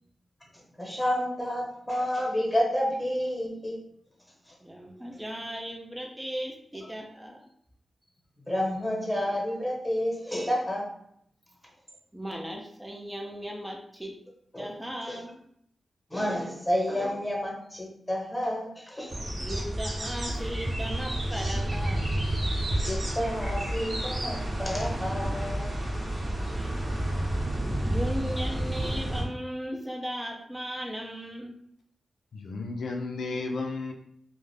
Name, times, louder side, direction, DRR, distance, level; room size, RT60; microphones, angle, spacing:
voice 1, 0.5-3.8 4.5-4.6 8.4-10.8 14.5-14.7 15.1-15.2 16.1-19.2 22.8-25.8 26.1-26.2 26.5-26.6, equal, 10° left, -1 dB, 0.9 m, -30 dB
voice 2, 4.6-7.5 12.1-14.2 14.6-15.4 19.4-22.1 26.5-26.9 27.9-31.6, equal, 10° right, 1 dB, 0.4 m, -37 dB
sound 1, 19.1-29.2, right 1 dB, 50° right, 0.9 m, -30 dB
voice 3, 32.3-33.9, left 3 dB, 80° left, 2 dB, 0.3 m, -33 dB
2.3 x 2.0 x 3.1 m, 0.70 s
cardioid pair, 60°, 0 cm